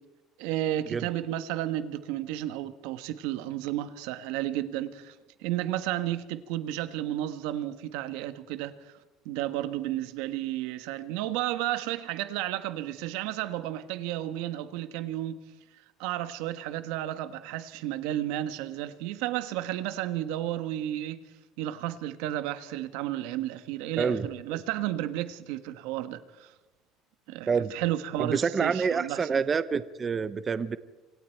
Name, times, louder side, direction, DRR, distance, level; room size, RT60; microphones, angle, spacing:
voice 1, 0.4-5.1 5.4-8.9 9.2-15.4 16.0-21.2 21.6-26.5 27.3-29.2, right 13 dB, 90° right, 1.3 m, -32 dB
voice 2, 24.0-24.6 27.5-27.7 28.2-30.8, right 5 dB, 20° right, 0.6 m, -28 dB
26.5 x 25.5 x 4.6 m
cardioid pair, 175°, 0 cm